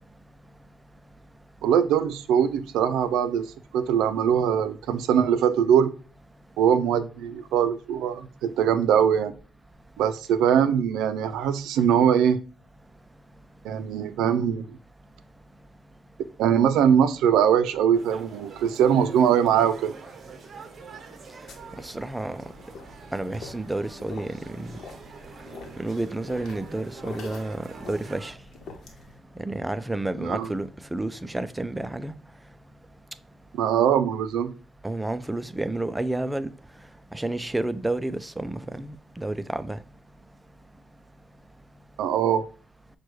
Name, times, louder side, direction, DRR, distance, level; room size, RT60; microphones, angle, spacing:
voice 1, 1.6-3.5 3.7-5.9 6.6-9.3 10.0-12.4 13.6-14.8 16.4-19.9 30.2-30.5 33.6-34.5 42.0-42.4, right 8 dB, 90° right, 0.4 m, -22 dB
sound 1, 17.9-28.3, right 5 dB, 50° right, 0.7 m, -45 dB
sound 2, 21.5-29.2, left 4 dB, 65° left, 0.9 m, -45 dB
voice 2, 21.8-22.4 23.1-24.7 25.8-28.3 29.4-32.1 34.8-36.5 37.1-39.8, right 2 dB, 10° right, 0.3 m, -30 dB
6.0 x 2.2 x 3.1 m
cardioid pair, 90°, 0 cm